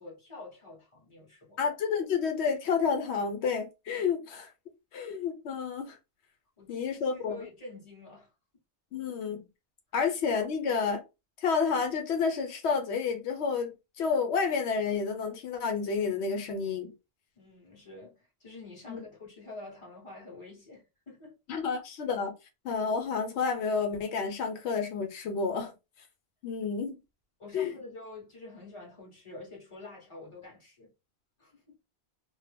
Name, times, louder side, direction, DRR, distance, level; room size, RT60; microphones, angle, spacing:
voice 1, 0.0-1.6 6.6-8.3 8.9-9.0 17.4-21.4 27.4-30.9 31.4-31.7, left 2 dB, 30° left, 1.3 m, -47 dB
voice 2, 1.6-4.5 4.9-6.0 6.7-7.4 8.9-9.4 9.9-11.0 11.4-16.9 18.9-19.0 21.5-22.3 22.6-25.7 26.4-27.0 27.5-27.7, left 5 dB, 90° left, 0.9 m, -30 dB
2.7 x 2.1 x 3.3 m
omnidirectional pair, 1.1 m